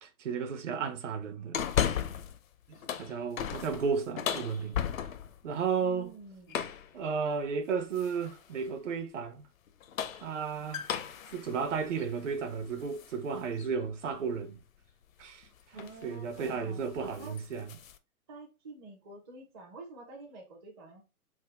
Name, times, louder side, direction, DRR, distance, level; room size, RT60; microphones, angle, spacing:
voice 1, 0.0-1.6 2.9-4.8 5.4-6.1 6.9-9.5 10.2-10.9 11.3-14.6 15.2-17.8, right 6 dB, 55° right, 0.7 m, -33 dB
sound 1, 1.5-2.4 2.7-5.4 6.5-6.9 8.0-8.4 9.7-13.1 13.6-13.7 15.2-15.4 15.8-16.0 16.3-16.6 16.9-18.0, left 9 dB, 65° left, 0.6 m, -35 dB
voice 2, 5.8-6.6 15.7-16.8 17.2-17.4 18.3-21.0, right 2 dB, 20° right, 0.5 m, -48 dB
3.5 x 2.2 x 3.3 m
figure-of-eight pair, 125°, 45 cm